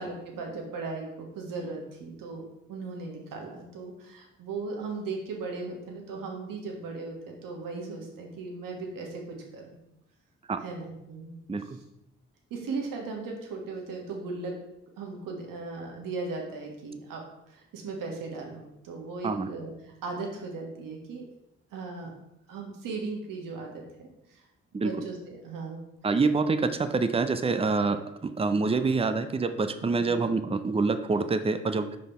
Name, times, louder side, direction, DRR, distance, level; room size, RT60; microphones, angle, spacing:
voice 1, 0.0-2.4 2.7-9.2 9.5-9.7 10.6-11.4 11.7-11.8 12.5-14.5 15.0-17.2 17.5-21.2 21.7-22.1 22.5-24.5 24.8-25.8 27.4-27.6, right 3 dB, 75° right, 1 dB, 1.4 m, -37 dB
voice 2, 24.7-25.0 26.0-32.0, right 4 dB, 20° right, 9 dB, 0.5 m, -26 dB
5.2 x 4.2 x 4.3 m, 0.85 s
supercardioid pair, 45°, 33 cm